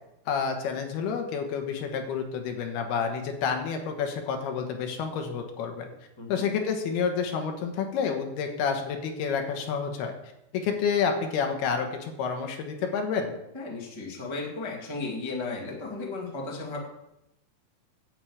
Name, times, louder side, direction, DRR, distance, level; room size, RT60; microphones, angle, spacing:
voice 1, 0.3-5.9 6.3-10.1 10.5-13.4, left 6 dB, 85° left, 5 dB, 3.3 m, -29 dB
voice 2, 13.5-16.8, left 3 dB, 15° left, -1 dB, 0.9 m, -35 dB
9.6 x 6.3 x 8.6 m, 0.87 s
omnidirectional pair, 4.4 m